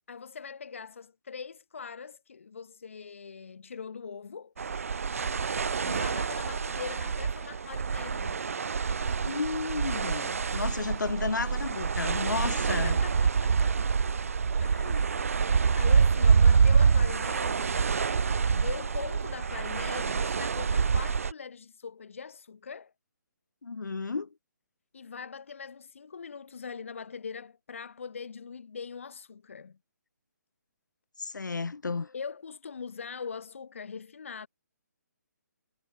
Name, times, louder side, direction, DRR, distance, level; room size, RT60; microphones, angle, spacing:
voice 1, 0.1-4.5 5.8-8.4 11.2-11.3 12.5-13.9 14.5-15.1 15.7-17.8 18.5-22.9 24.9-29.8 32.1-34.5, left 5 dB, 45° left, 1.9 m, -41 dB
sound 1, 4.6-21.3, right 5 dB, 50° right, 0.4 m, -26 dB
voice 2, 9.2-13.0 14.8-15.0 23.6-24.3 31.2-32.2, left 4 dB, 85° left, 5.4 m, -33 dB
hypercardioid pair, 180°, 10 cm